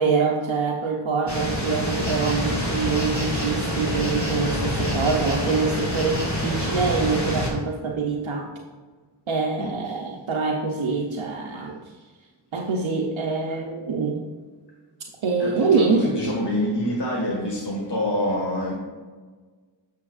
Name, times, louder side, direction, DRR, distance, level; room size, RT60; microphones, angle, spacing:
voice 1, 0.0-8.5 9.3-11.9 12.5-14.3 15.2-16.1, right 4 dB, 85° right, 0 dB, 0.7 m, -25 dB
sound 1, 1.3-7.5, equal, 35° left, 2.0 m, -26 dB
voice 2, 15.4-18.7, left 1 dB, 60° left, -3 dB, 1.7 m, -26 dB
8.4 x 7.0 x 2.4 m, 1.4 s
wide cardioid pair, 40°, 46 cm